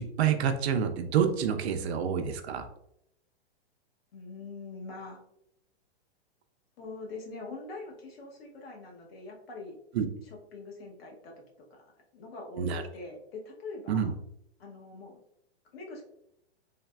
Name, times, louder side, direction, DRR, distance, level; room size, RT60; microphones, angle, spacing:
voice 1, 0.0-2.7 9.9-10.1 12.6-12.8 13.9-14.1, right 7 dB, 75° right, 7 dB, 0.5 m, -28 dB
voice 2, 4.1-5.2 6.8-9.8 10.2-11.4 11.7-14.1 14.6-15.2 15.7-16.0, left 3 dB, 65° left, 0 dB, 1.0 m, -43 dB
3.3 x 2.1 x 2.3 m, 0.75 s
hypercardioid pair, 145°, 32 cm